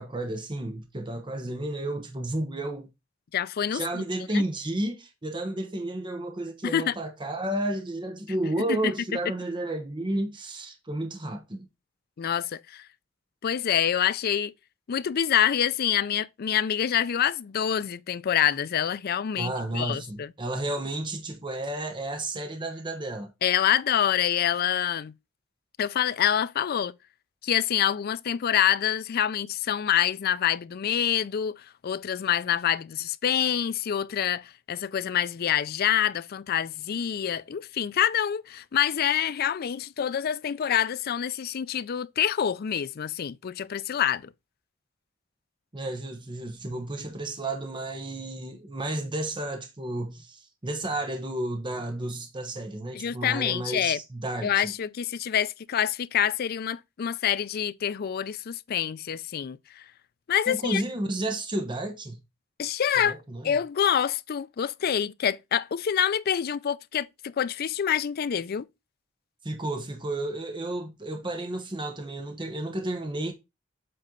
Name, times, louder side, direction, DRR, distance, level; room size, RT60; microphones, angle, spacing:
voice 1, 0.0-2.9 3.7-11.7 19.3-23.3 45.7-54.7 60.5-62.2 63.1-63.5 69.4-73.3, right 1 dB, 25° right, 0.9 m, -32 dB
voice 2, 3.3-4.0 4.3-4.4 6.6-6.9 8.7-8.9 12.2-12.8 13.4-14.5 14.9-20.3 23.4-25.1 25.8-26.9 27.4-44.3 52.9-54.0 54.4-59.8 60.3-60.8 62.6-63.2 63.4-68.7, left 9 dB, 50° left, 0.4 m, -26 dB
7.8 x 4.2 x 3.7 m
head